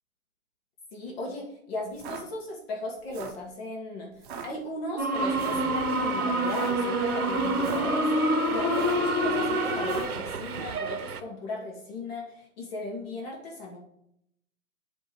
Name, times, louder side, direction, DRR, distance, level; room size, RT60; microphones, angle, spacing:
voice 1, 0.9-13.8, left 2 dB, 45° left, -1 dB, 1.8 m, -37 dB
sound 1, 1.9-2.2 3.0-3.4 4.2-4.5 5.3-5.7 6.4-6.7 7.5-7.9 8.7-9.1 9.8-10.2, right 6 dB, 35° right, 1.0 m, -40 dB
sound 2, 5.0-10.0, right 1 dB, 15° right, 0.3 m, -26 dB
Subway metro underground, 5.1-11.2, right 7 dB, 90° right, 0.8 m, -36 dB
7.8 x 3.5 x 4.6 m, 0.75 s
hypercardioid pair, 135°, 43 cm